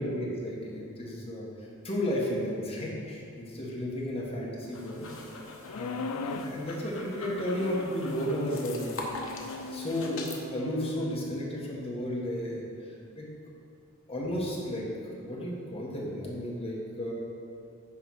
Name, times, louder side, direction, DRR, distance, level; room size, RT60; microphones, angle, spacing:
voice 1, 0.0-1.5 1.8-5.1 5.7-9.2 9.7-10.2 10.5-12.7 13.1-13.3 14.1-14.9 15.2-17.1, equal, 25° left, -4 dB, 1.5 m, -33 dB
sound 1, 4.6-10.4, left 2 dB, 65° left, 1.0 m, -43 dB
sound 2, 5.7-6.6 7.5-11.2, left 4 dB, 85° left, 0.4 m, -39 dB
9.8 x 3.4 x 6.2 m, 2.5 s
head